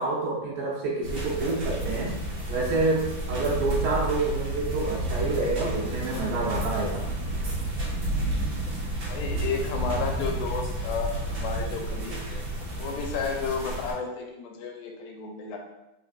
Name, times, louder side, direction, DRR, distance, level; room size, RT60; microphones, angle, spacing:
voice 1, 0.0-2.2 2.5-7.1, right 2 dB, 75° right, -3 dB, 2.5 m, -28 dB
sound 1, 1.0-13.9, right 1 dB, 50° right, 1.7 m, -31 dB
voice 2, 9.1-12.4 12.8-15.6, left 5 dB, 80° left, 2 dB, 2.2 m, -32 dB
5.2 x 3.8 x 2.5 m, 0.92 s
omnidirectional pair, 4.2 m